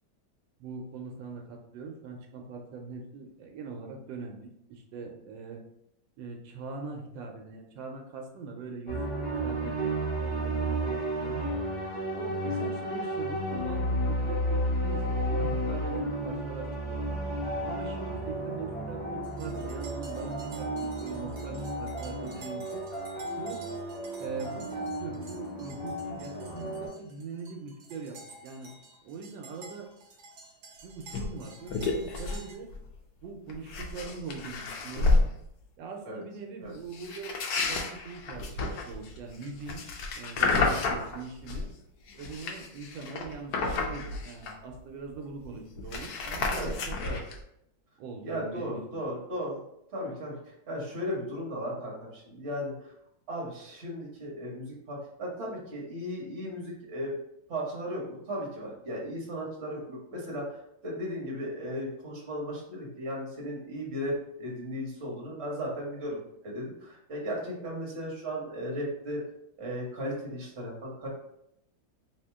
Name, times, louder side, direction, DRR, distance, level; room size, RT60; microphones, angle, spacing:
voice 1, 0.6-5.6 6.2-11.4 12.2-17.1 17.6-22.9 23.4-23.6 24.2-28.7 29.0-29.9 30.8-32.7 33.2-35.2 35.8-37.4 37.7-39.8 40.2-41.7 42.2-47.2 48.0-49.0, right 4 dB, 85° right, 2 dB, 1.3 m, -42 dB
sound 1, 8.9-26.9, right 1 dB, 40° left, 1.0 m, -32 dB
sound 2, 19.2-32.6, right 3 dB, 65° right, 1.1 m, -52 dB
sound 3, 31.1-31.3 31.7-32.4 32.7-33.0 33.5-35.3 36.9-41.7 42.1-44.8 45.1-45.2 45.4-47.4, left 3 dB, 70° left, 1.0 m, -30 dB
voice 2, 48.2-49.6 49.9-52.7 53.3-57.1 57.5-69.2 69.6-71.1, equal, 40° right, -3 dB, 1.2 m, -36 dB
3.0 x 2.8 x 3.4 m, 0.78 s
omnidirectional pair, 2.0 m